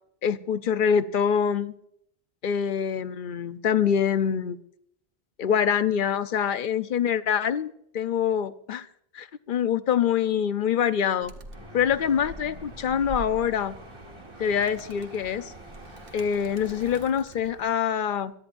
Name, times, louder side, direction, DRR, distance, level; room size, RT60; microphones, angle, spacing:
voice 1, 0.2-1.7 2.4-4.6 5.4-8.9 9.1-11.3 11.7-13.8 14.4-15.5 16.1-18.3, left 8 dB, 60° left, 13 dB, 0.7 m, -25 dB
Animal, 11.2-17.7, right 2 dB, 60° right, 1.3 m, -44 dB
sound 1, 11.5-17.1, right 1 dB, 25° right, 1.7 m, -47 dB
22.0 x 12.5 x 2.6 m, 0.69 s
omnidirectional pair, 1.1 m